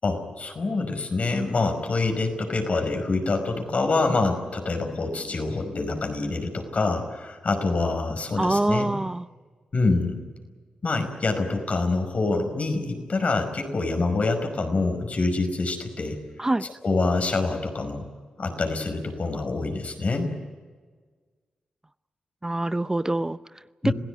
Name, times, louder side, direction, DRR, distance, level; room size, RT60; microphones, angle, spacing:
voice 1, 0.0-8.9 9.7-10.2 10.8-16.2 16.8-18.0 18.4-20.3 23.8-23.9, left 3 dB, 55° left, 5 dB, 5.3 m, -26 dB
voice 2, 8.4-9.3 16.4-16.7 22.4-23.9, right 2 dB, 20° right, 14 dB, 0.6 m, -25 dB
26.5 x 16.5 x 9.4 m, 1.5 s
cardioid pair, 55°, 3 cm